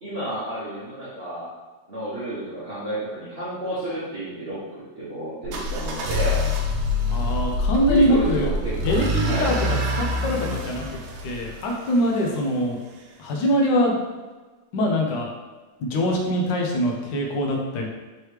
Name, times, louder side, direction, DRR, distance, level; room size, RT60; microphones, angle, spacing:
voice 1, 0.0-1.5 1.9-6.4 7.8-9.5, right 1 dB, 40° right, -10 dB, 1.0 m, -31 dB
sound 1, 5.4-12.3, left 2 dB, 65° right, 1.1 m, -26 dB
voice 2, 7.1-8.6 8.8-12.8 13.2-14.0 14.7-15.3 15.8-17.9, equal, 70° left, 0 dB, 1.3 m, -23 dB
4.6 x 3.1 x 3.2 m, 1.3 s
omnidirectional pair, 2.2 m